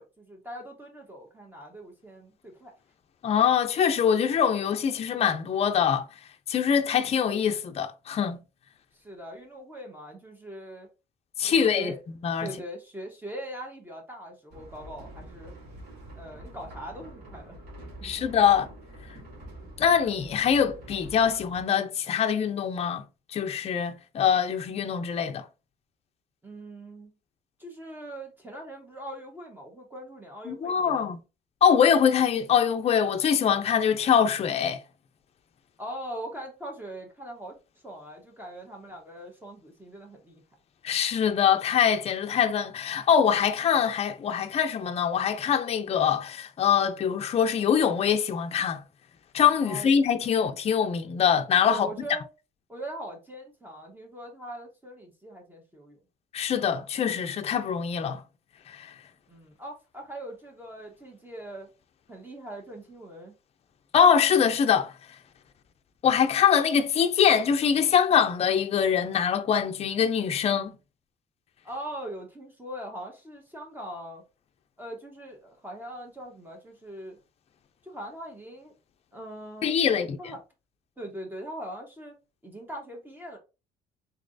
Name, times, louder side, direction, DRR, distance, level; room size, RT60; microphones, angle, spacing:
voice 1, 0.0-2.7 8.9-10.9 11.4-12.0 12.4-15.5 16.1-17.6 18.0-18.1 26.4-27.1 27.6-31.1 35.8-37.6 37.8-40.4 49.6-49.9 51.7-52.3 52.7-56.0 59.3-61.7 62.1-63.3 71.6-74.2 74.8-77.2 77.8-78.7 79.1-79.8 80.2-80.4 81.0-83.4, right 1 dB, 10° right, 1.1 m, -41 dB
voice 2, 3.2-6.1 6.5-8.4 11.4-11.9 12.2-12.5 18.0-18.7 19.8-23.0 23.3-25.4 30.5-31.2 31.6-34.8 40.8-48.8 49.3-51.9 56.3-58.2 58.7-58.9 63.9-64.9 66.0-70.7 79.6-80.2, left 8 dB, 40° left, 0.5 m, -23 dB
sound 1, 14.5-21.6, right 1 dB, 75° right, 2.2 m, -46 dB
3.9 x 3.1 x 2.6 m
cardioid pair, 110°, 17 cm